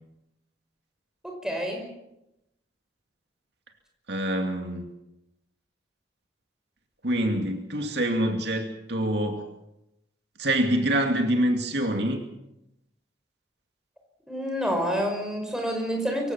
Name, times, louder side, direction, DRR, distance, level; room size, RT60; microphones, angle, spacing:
voice 1, 1.2-1.9 14.3-16.3, equal, 5° right, 2 dB, 5.3 m, -28 dB
voice 2, 4.1-4.9 7.0-9.5 10.4-12.2, right 1 dB, 65° right, 4 dB, 2.4 m, -25 dB
24.5 x 16.5 x 7.1 m, 0.86 s
head